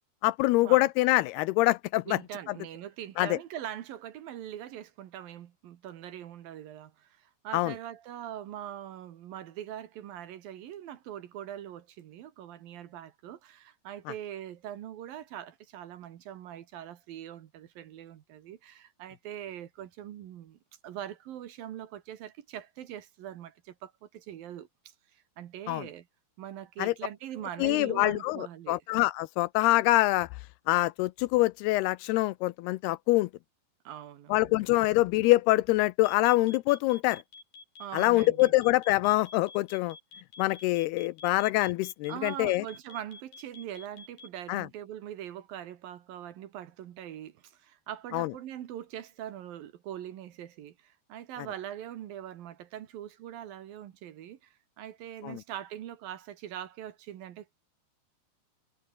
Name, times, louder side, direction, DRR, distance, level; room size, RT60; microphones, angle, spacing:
voice 1, 0.2-2.2 3.2-3.4 7.5-7.7 25.7-25.9 26.8-26.9 27.6-30.3 30.7-33.3 34.3-37.2 37.9-40.0 40.4-42.6 44.5-44.7 48.1-48.3 55.2-55.4, left 19 dB, 80° left, 2.5 m, -25 dB
voice 2, 2.1-26.1 26.4-28.8 33.8-34.5 37.8-38.5 42.1-57.5, right 11 dB, 65° right, 2.9 m, -42 dB
sound 1, 36.0-44.4, left 4 dB, 60° left, 9.4 m, -49 dB
omnidirectional pair, 4.8 m